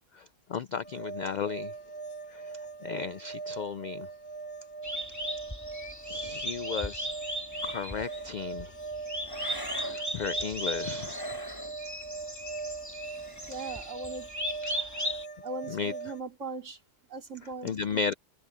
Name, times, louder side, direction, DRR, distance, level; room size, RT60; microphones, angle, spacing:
voice 1, 0.5-1.7 2.8-4.1 6.1-7.1 7.6-8.7 9.7-11.2 14.7-14.8 15.7-15.9 17.6-18.1, left 6 dB, 75° left, 0.4 m, -34 dB
sound 1, 0.8-16.2, right 4 dB, 40° left, 1.4 m, -41 dB
sound 2, 4.8-15.3, equal, 15° left, 3.1 m, -37 dB
sound 3, 7.5-8.3 9.2-10.0 10.9-11.7 13.1-13.9, equal, 15° right, 6.6 m, -43 dB
voice 2, 13.5-14.3 15.4-16.8 17.1-17.7, right 3 dB, 75° right, 3.1 m, -39 dB
omnidirectional pair, 1.3 m